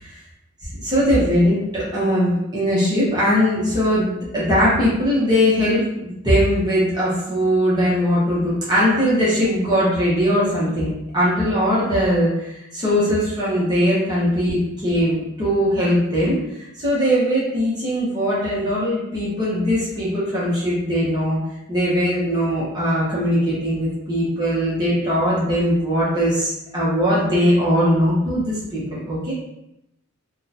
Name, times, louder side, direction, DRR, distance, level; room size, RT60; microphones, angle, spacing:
voice 1, 0.8-16.4 16.8-21.4 21.7-29.3, equal, 20° right, -8 dB, 1.0 m, -20 dB
2.8 x 2.3 x 4.0 m, 0.86 s
head